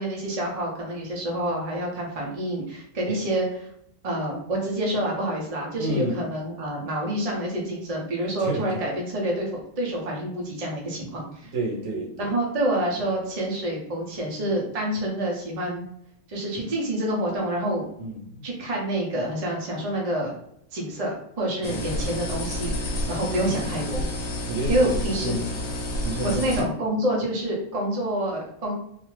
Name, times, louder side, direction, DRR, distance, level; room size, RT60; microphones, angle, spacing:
voice 1, 0.0-3.5 4.0-9.5 9.8-11.5 12.2-15.9 16.3-17.9 18.4-20.3 20.7-24.1 24.7-25.3 26.2-28.7, right 1 dB, 35° right, -2 dB, 0.6 m, -27 dB
voice 2, 5.8-6.2 8.4-8.8 11.5-12.3 18.0-18.5 21.6-22.1 23.4-23.7 24.5-25.5 26.0-26.7, right 1 dB, 65° right, -3 dB, 1.2 m, -31 dB
sound 1, 21.6-26.6, left 1 dB, 75° left, 1.0 m, -29 dB
2.7 x 2.4 x 3.1 m, 0.72 s
omnidirectional pair, 1.5 m